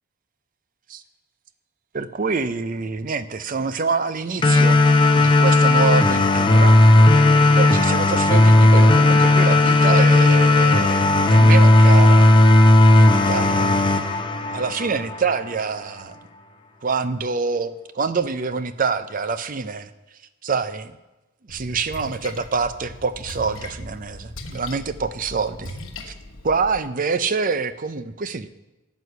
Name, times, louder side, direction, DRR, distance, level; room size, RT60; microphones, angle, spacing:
voice 1, 1.9-4.9 5.1-6.8 7.6-12.3 13.0-13.7 14.5-16.2 16.8-19.9 20.4-21.0 21.5-25.7 26.1-26.2 26.4-28.5, right 5 dB, 40° right, 12 dB, 0.5 m, -26 dB
sound 1, 4.4-15.4, left 2 dB, 25° left, 0.6 m, -14 dB
Splash splatter, 21.5-26.8, left 2 dB, 70° left, 1.2 m, -39 dB
9.4 x 8.2 x 6.8 m, 1.0 s
head